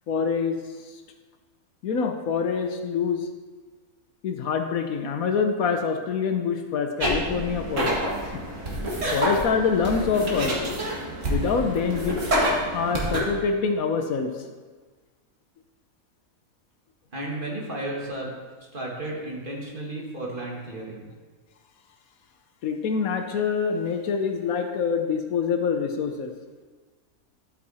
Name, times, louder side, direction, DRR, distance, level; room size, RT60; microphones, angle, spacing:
voice 1, 0.1-1.0 1.8-3.3 4.2-8.4 9.1-10.5 11.2-12.2 12.7-14.5 22.6-26.3, left 5 dB, 70° left, 6 dB, 1.2 m, -26 dB
sound 1, 7.0-13.2, equal, 55° right, 2.1 m, -27 dB
voice 2, 17.1-18.3 18.7-21.1, right 1 dB, 35° right, -3 dB, 1.9 m, -33 dB
12.5 x 5.8 x 4.2 m, 1.4 s
omnidirectional pair, 1.5 m